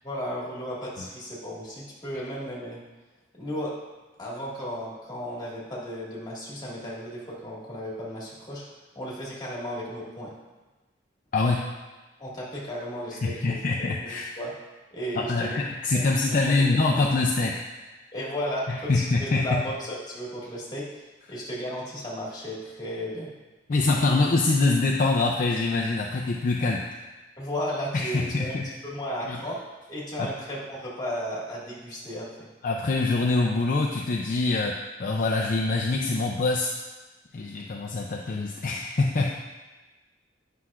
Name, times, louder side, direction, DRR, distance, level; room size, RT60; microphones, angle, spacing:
voice 1, 0.0-2.8 3.3-3.7 4.2-8.6 8.9-10.3 12.2-13.9 14.4-14.5 14.9-15.6 15.9-16.0 16.6-16.7 18.1-20.9 21.3-23.3 27.4-28.6 28.8-29.6 29.9-32.5, equal, 20° left, -6 dB, 1.8 m, -34 dB
voice 2, 11.3-11.6 13.2-14.3 15.1-17.6 18.7-19.6 23.7-27.0 27.9-28.7 29.3-29.4 30.2-30.3 32.6-36.7 37.3-39.3, left 3 dB, 45° left, -1 dB, 0.5 m, -24 dB
9.5 x 5.8 x 2.4 m, 1.2 s
head